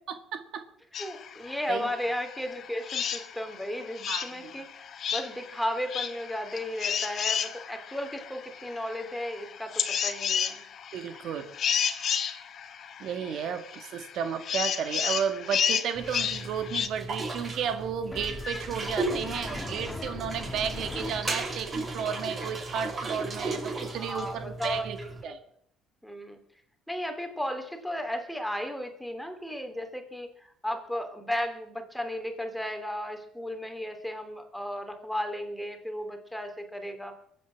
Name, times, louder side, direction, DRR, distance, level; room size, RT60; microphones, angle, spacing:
voice 1, 0.3-0.6 1.7-1.9 4.1-4.5 10.9-11.5 13.0-25.0 25.2-25.4, right 7 dB, 65° right, 8 dB, 1.8 m, -33 dB
sound 1, 0.9-16.9, left 8 dB, 50° left, 1.7 m, -32 dB
voice 2, 1.0-10.6 24.0-25.4 26.0-26.4 26.9-37.1, left 1 dB, ahead, 6 dB, 2.9 m, -35 dB
sound 2, 15.9-25.2, right 2 dB, 30° right, 6.1 m, -36 dB
sound 3, 18.1-22.1, left 2 dB, 20° left, 2.1 m, -39 dB
22.0 x 8.7 x 7.5 m, 0.67 s
cardioid pair, 115°, 0 cm